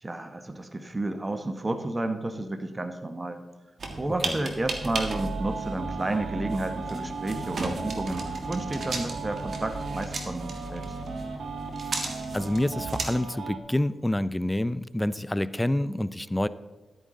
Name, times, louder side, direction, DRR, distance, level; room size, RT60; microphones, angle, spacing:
voice 1, 0.0-3.4 4.0-10.9, right 2 dB, 25° right, 8 dB, 0.9 m, -31 dB
sound 1, 3.8-13.1, right 2 dB, 65° right, 1.7 m, -35 dB
sound 2, 5.1-13.6, right 5 dB, 80° right, 1.3 m, -37 dB
voice 2, 12.0-16.5, left 1 dB, 10° left, 15 dB, 0.4 m, -28 dB
12.5 x 9.1 x 3.8 m, 1.3 s
cardioid pair, 65°, 0 cm